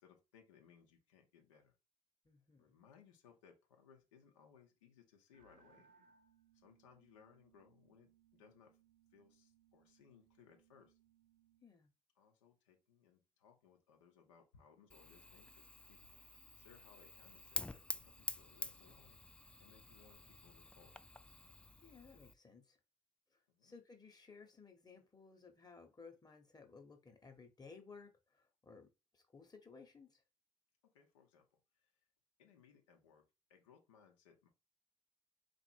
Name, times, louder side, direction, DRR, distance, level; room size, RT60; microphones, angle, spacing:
voice 1, 0.0-1.7 2.6-5.9 6.5-8.8 9.1-11.0 12.2-16.2 16.5-21.0 23.5-23.7 30.8-32.0 32.4-34.5, left 7 dB, 75° left, 0.9 m, -66 dB
voice 2, 2.2-2.7 11.6-11.9 21.8-22.8 23.3-30.2, left 4 dB, 25° left, 1.2 m, -59 dB
sound 1, 5.3-11.7, right 7 dB, 55° right, 0.9 m, -71 dB
Fire, 14.9-22.3, left 2 dB, 5° left, 0.4 m, -48 dB
4.2 x 2.6 x 4.5 m
figure-of-eight pair, 40°, 16 cm